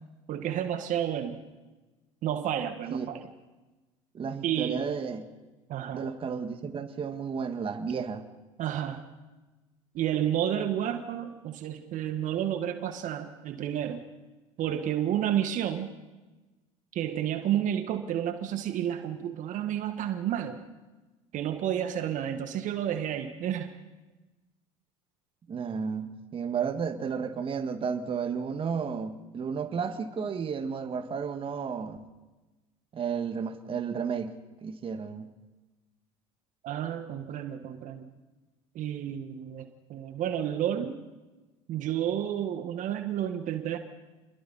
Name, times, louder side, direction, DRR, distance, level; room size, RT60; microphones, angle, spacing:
voice 1, 0.3-1.4 2.2-3.3 4.4-4.9 5.7-6.1 8.6-9.0 9.9-14.0 14.6-15.9 16.9-20.6 21.3-23.7 36.6-38.1 38.7-41.0 41.7-43.8, right 10 dB, 50° right, 7 dB, 1.6 m, -31 dB
voice 2, 4.1-5.3 5.9-8.3 25.5-32.0 32.9-34.3 34.6-35.3, right 6 dB, 35° right, 7 dB, 1.8 m, -32 dB
28.5 x 21.5 x 4.3 m, 1.2 s
hypercardioid pair, 75°, 16 cm